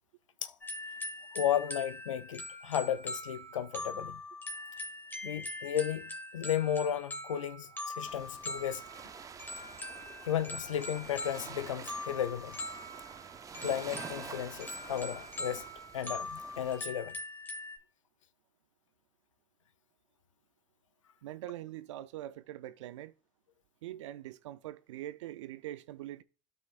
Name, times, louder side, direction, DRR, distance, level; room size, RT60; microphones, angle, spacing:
sound 1, 0.6-17.8, left 1 dB, 15° left, 1.8 m, -42 dB
voice 1, 1.3-4.2 5.2-8.8 10.3-12.6 13.6-15.7 15.9-17.2, left 10 dB, 90° left, 0.6 m, -34 dB
sound 2, 8.1-16.8, right 6 dB, 20° right, 0.7 m, -48 dB
voice 2, 21.2-23.1 23.8-26.2, right 14 dB, 75° right, 0.7 m, -43 dB
12.5 x 5.5 x 2.5 m
hypercardioid pair, 95°, 16 cm